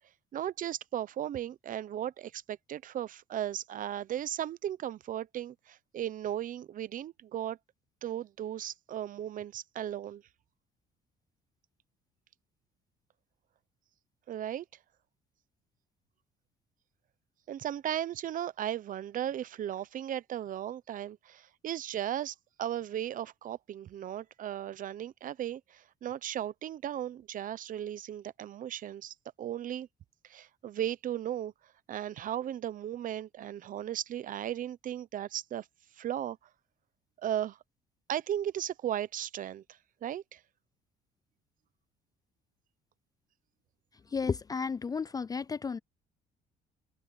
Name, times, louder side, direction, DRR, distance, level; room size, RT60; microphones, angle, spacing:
voice 1, 0.3-7.6 8.0-10.2 14.3-14.6 17.5-29.9 30.2-31.5 31.9-35.7 36.0-36.4 37.2-37.6 38.1-39.6 40.0-40.4, right 11 dB, 50° right, 0.9 m, -36 dB
voice 2, 44.1-45.8, left 5 dB, 20° left, 0.4 m, -33 dB
open air
cardioid pair, 110°, 17 cm